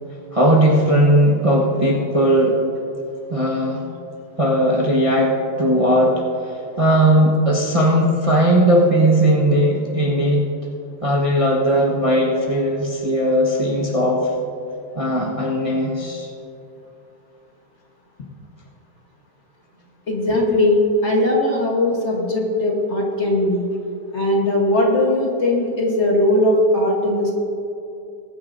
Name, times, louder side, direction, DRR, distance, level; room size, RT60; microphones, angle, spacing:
voice 1, 0.3-2.6 3.3-3.9 4.4-10.4 11.0-14.3 14.9-16.3, right 1 dB, 20° right, -3 dB, 1.1 m, -18 dB
voice 2, 20.1-23.7 24.1-27.3, left 1 dB, 40° left, -1 dB, 1.6 m, -19 dB
21.0 x 9.6 x 2.7 m, 2.7 s
omnidirectional pair, 1.9 m